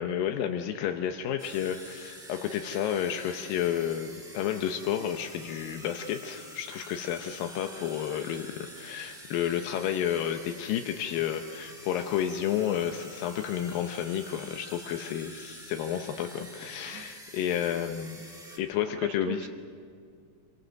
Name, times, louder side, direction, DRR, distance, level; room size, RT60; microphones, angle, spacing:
voice 1, 0.0-18.2 18.6-19.5, left 10 dB, 75° left, 5 dB, 2.1 m, -31 dB
sound 1, 1.4-18.6, right 1 dB, ahead, 2.3 m, -47 dB
voice 2, 18.9-19.5, right 11 dB, 75° right, 6 dB, 3.1 m, -42 dB
26.5 x 23.5 x 6.4 m, 2.3 s
omnidirectional pair, 5.0 m